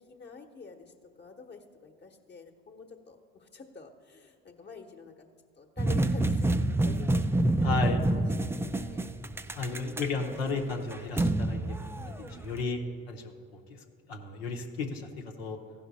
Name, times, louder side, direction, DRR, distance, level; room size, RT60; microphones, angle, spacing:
voice 1, 0.0-5.3 5.6-9.1 11.9-12.5, left 4 dB, 35° left, 2 dB, 1.1 m, -48 dB
sound 1, 5.8-12.6, right 1 dB, 10° right, 0.3 m, -28 dB
voice 2, 7.6-8.0 9.6-11.6 12.2-12.8 13.1-13.3 14.1-15.1 15.4-15.6, left 4 dB, 90° left, 1 dB, 0.9 m, -32 dB
15.0 x 5.8 x 4.1 m, 2.3 s
hypercardioid pair, 65°, 30 cm